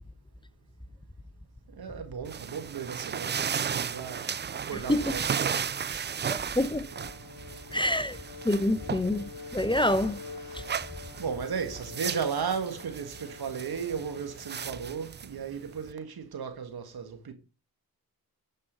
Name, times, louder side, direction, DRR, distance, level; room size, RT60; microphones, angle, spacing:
voice 1, 1.7-6.4 7.7-7.8 10.5-10.8 11.2-17.3, right 6 dB, 75° right, 1.9 m, -36 dB
sound 1, 2.3-15.9, right 7 dB, 30° right, 0.4 m, -35 dB
voice 2, 6.3-6.9 7.7-8.2 8.4-10.2 10.5-10.6, left 1 dB, 15° left, 0.8 m, -26 dB
Bowed string instrument, 6.6-14.9, left 4 dB, 80° left, 1.5 m, -47 dB
12.0 x 5.5 x 5.2 m
cardioid pair, 50°, 37 cm